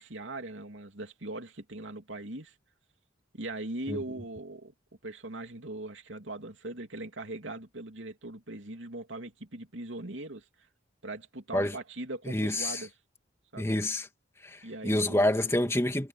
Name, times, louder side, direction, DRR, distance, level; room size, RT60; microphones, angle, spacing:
voice 1, 0.0-2.5 3.3-4.7 5.0-10.5 11.0-12.9 13.5-13.7 14.6-15.4, right 2 dB, 80° right, 3.0 m, -40 dB
voice 2, 12.3-12.8 13.6-14.1 14.4-16.1, left 1 dB, 15° left, 2.2 m, -28 dB
head